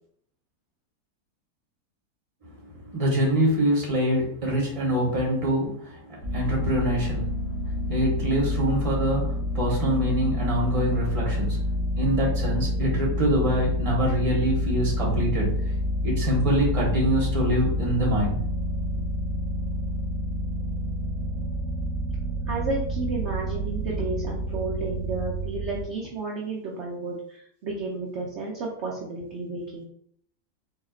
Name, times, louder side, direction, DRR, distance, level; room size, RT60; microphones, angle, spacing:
voice 1, 2.8-6.0 6.3-7.3 7.6-11.6 11.9-15.5 16.0-18.4, right 1 dB, 25° right, -3 dB, 1.0 m, -25 dB
sound 1, 6.2-25.8, left 1 dB, 60° left, 1.6 m, -28 dB
voice 2, 22.5-29.8, right 3 dB, 60° right, -2 dB, 0.7 m, -32 dB
4.4 x 2.8 x 2.4 m, 0.65 s
omnidirectional pair, 1.8 m